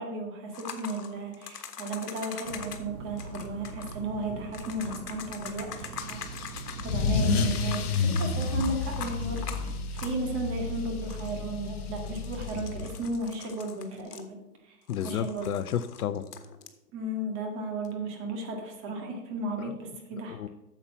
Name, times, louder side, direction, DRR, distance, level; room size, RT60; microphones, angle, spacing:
voice 1, 0.0-14.4 14.6-14.8 15.0-15.5 16.9-20.4, right 2 dB, 25° right, 2 dB, 1.8 m, -35 dB
sound 1, 0.5-2.8 3.2-4.0 4.5-6.9 7.5-10.4 10.7-10.8 11.0-11.4 12.0-14.6 14.9-16.7 17.8-17.9, left 7 dB, 85° left, 1.4 m, -43 dB
sound 2, 2.4-9.8, right 5 dB, 70° right, 1.2 m, -42 dB
Car / Engine starting / Accelerating revving vroom, 6.0-13.2, left 4 dB, 40° left, 1.3 m, -30 dB
voice 2, 14.9-16.2 19.6-19.8 20.3-20.5, left 10 dB, 65° left, 14 dB, 0.7 m, -32 dB
8.9 x 7.1 x 5.7 m, 0.96 s
hypercardioid pair, 145°, 47 cm